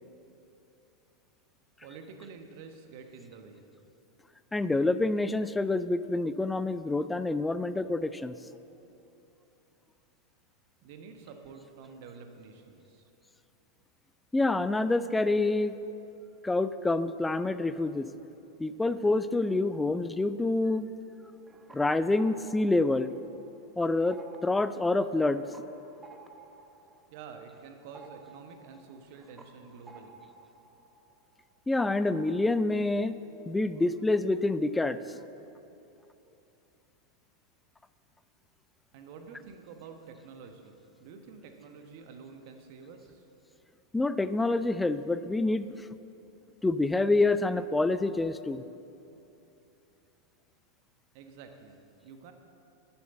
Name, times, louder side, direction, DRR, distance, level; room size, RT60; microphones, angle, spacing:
voice 1, 1.8-3.7 10.8-13.0 27.1-30.2 38.9-43.3 51.1-52.3, right 5 dB, 50° right, 5 dB, 1.1 m, -48 dB
voice 2, 4.5-8.4 14.3-15.8 16.4-18.1 18.6-20.9 21.7-23.1 23.8-25.4 31.7-33.1 33.5-35.0 43.9-45.9 46.6-48.6, left 2 dB, 10° left, 13 dB, 0.4 m, -27 dB
sound 1, 21.2-23.7 24.0-31.5 31.8-32.6, right 4 dB, 10° right, 0.9 m, -54 dB
10.5 x 7.1 x 7.8 m, 2.9 s
figure-of-eight pair, 90°, 0 cm